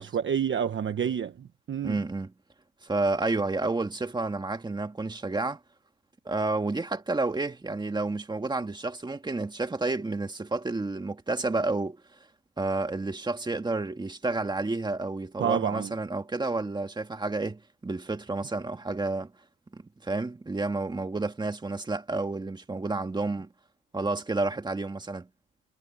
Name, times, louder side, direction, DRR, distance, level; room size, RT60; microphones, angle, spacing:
voice 1, 0.0-2.0 15.4-15.9, right 8 dB, 30° right, 1.1 m, -29 dB
voice 2, 1.8-2.3 2.8-5.6 6.3-12.0 12.6-19.3 19.7-23.5 23.9-25.3, right 3 dB, 10° right, 1.9 m, -30 dB
cardioid pair, 155°, 39 cm